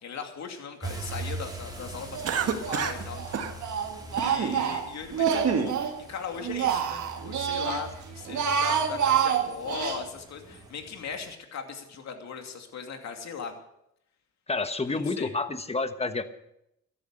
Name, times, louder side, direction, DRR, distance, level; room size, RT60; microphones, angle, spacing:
voice 1, 0.0-3.5 3.7-3.8 4.1-13.5 14.8-15.3, left 6 dB, 60° left, 4 dB, 2.7 m, -38 dB
sound 1, 0.8-11.3, right 2 dB, 15° right, 3.9 m, -42 dB
Speech, 2.1-2.8 3.1-6.0 6.3-7.8 8.2-10.0, right 8 dB, 70° right, 1.9 m, -27 dB
Cough, 2.2-3.0 3.3-3.5 4.2-4.6 5.0-5.7, right 6 dB, 55° right, 1.5 m, -28 dB
voice 2, 14.5-16.3, left 3 dB, 20° left, 10 dB, 1.2 m, -29 dB
13.5 x 11.5 x 6.6 m, 0.80 s
cardioid pair, 90°, 30 cm